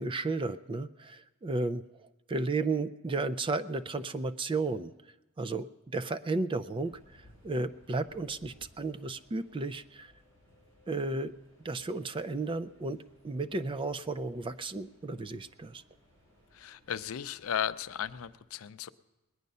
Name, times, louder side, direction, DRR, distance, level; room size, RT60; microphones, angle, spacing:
voice 1, 0.0-1.8 2.3-4.9 5.4-5.7 5.9-10.1 10.9-11.3 11.6-13.0 13.2-15.8, right 3 dB, 25° right, 13 dB, 0.4 m, -33 dB
sound 1, 6.8-18.4, left 1 dB, 70° right, 4.4 m, -62 dB
voice 2, 16.5-18.9, left 9 dB, 75° left, 13 dB, 0.5 m, -35 dB
21.5 x 9.4 x 5.4 m, 1.1 s
head